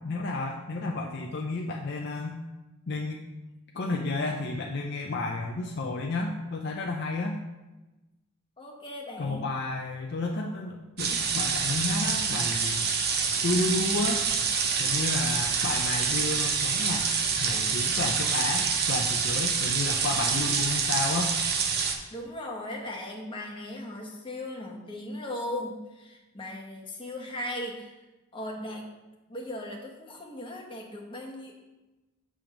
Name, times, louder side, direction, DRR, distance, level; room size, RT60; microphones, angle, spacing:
voice 1, 0.0-2.4 2.9-3.2 3.7-7.4 9.2-12.8 13.4-14.2 14.8-17.1 17.4-21.4, left 2 dB, 50° left, 1 dB, 0.4 m, -31 dB
voice 2, 8.6-9.4 22.1-27.9 28.3-28.9 29.3-31.6, left 1 dB, 25° left, -1 dB, 1.0 m, -38 dB
sound 1, 11.0-21.9, right 5 dB, 45° right, 0.7 m, -27 dB
7.3 x 3.5 x 5.9 m, 1.1 s
head